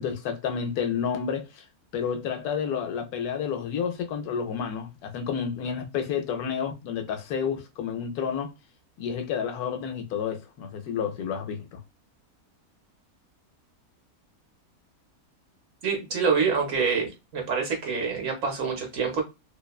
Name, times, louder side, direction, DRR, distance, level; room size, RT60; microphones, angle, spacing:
voice 1, 0.0-1.6 1.9-8.5 9.0-11.8, left 7 dB, 80° left, 1.1 m, -30 dB
voice 2, 15.8-19.2, right 5 dB, 65° right, 1.1 m, -26 dB
2.8 x 2.1 x 2.3 m
omnidirectional pair, 1.6 m